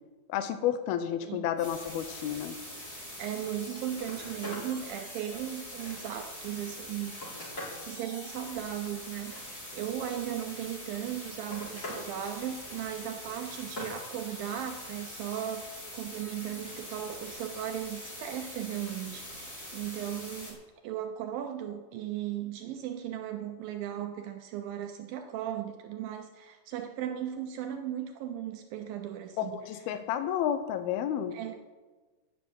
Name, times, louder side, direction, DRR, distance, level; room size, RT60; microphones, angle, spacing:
voice 1, 0.3-2.6 29.4-31.4, left 10 dB, 80° left, 9 dB, 2.3 m, -31 dB
voice 2, 1.2-1.5 3.2-7.1 7.8-20.6 20.8-29.6 31.3-31.7, right 10 dB, 85° right, 6 dB, 2.0 m, -37 dB
sound 1, 1.6-20.5, equal, 5° left, 4.0 m, -44 dB
Telephone, 4.0-4.7 5.2-6.3 6.8-7.8 9.1-9.9 10.9-12.0 12.4-12.8 13.3-14.0 16.4-16.8 18.2-18.3, left 1 dB, 25° left, 4.8 m, -44 dB
12.0 x 8.1 x 8.8 m, 1.3 s
omnidirectional pair, 5.0 m